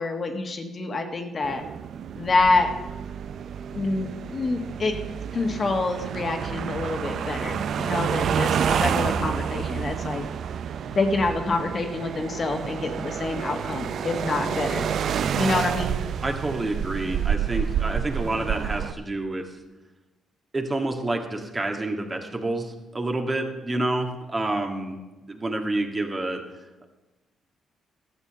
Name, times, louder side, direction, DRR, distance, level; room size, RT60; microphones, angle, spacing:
voice 1, 0.0-1.6 2.1-2.7 3.7-4.9 5.3-10.2 10.9-14.9 15.4-16.0, left 3 dB, 45° left, 5 dB, 1.6 m, -26 dB
sound 1, 1.4-18.9, right 8 dB, 65° right, 0.4 m, -29 dB
voice 2, 16.2-19.6 20.5-25.0 25.3-26.4, right 2 dB, 30° right, 3 dB, 1.7 m, -28 dB
12.5 x 7.1 x 6.8 m, 1.1 s
supercardioid pair, 65°, 0 cm